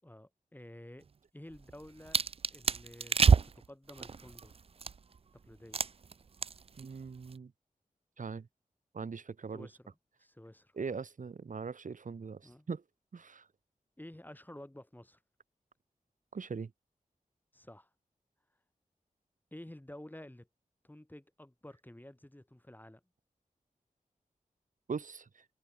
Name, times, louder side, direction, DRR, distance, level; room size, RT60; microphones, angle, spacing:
voice 1, 0.0-1.0 1.3-2.2 2.5-3.2 3.5-4.6 5.3-5.8 9.5-10.7 12.4-12.7 14.0-15.2 17.5-17.9 19.5-20.5 20.8-23.0, left 1 dB, 10° left, 7.7 m, -51 dB
sound 1, 1.5-5.2 5.7-6.1 6.4-6.8 7.1-7.3, right 5 dB, 45° right, 0.4 m, -28 dB
voice 2, 6.8-7.5 8.2-8.5 8.9-9.7 10.8-12.8 13.1-13.5 16.3-16.7 24.9-25.4, right 5 dB, 65° right, 1.2 m, -41 dB
wide cardioid pair, 80°, 14 cm